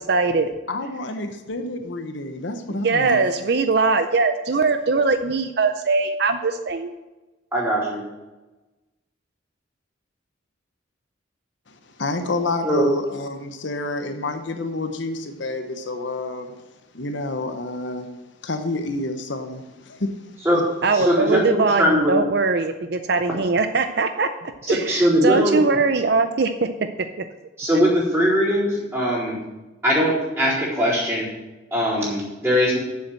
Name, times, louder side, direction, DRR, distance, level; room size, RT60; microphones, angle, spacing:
voice 1, 0.1-0.5 2.7-6.9 20.8-26.7 27.2-27.3, right 4 dB, 55° right, 8 dB, 0.5 m, -21 dB
voice 2, 0.7-3.3 11.7-16.5 16.9-18.1 18.4-20.1, left 2 dB, 70° left, 7 dB, 0.9 m, -29 dB
voice 3, 7.5-8.0 12.6-12.9 20.4-20.6 20.9-22.1 24.6-25.6 27.6-29.4 29.8-31.3 31.7-32.8, equal, 15° right, -8 dB, 4.0 m, -20 dB
7.3 x 7.2 x 7.6 m, 1.1 s
head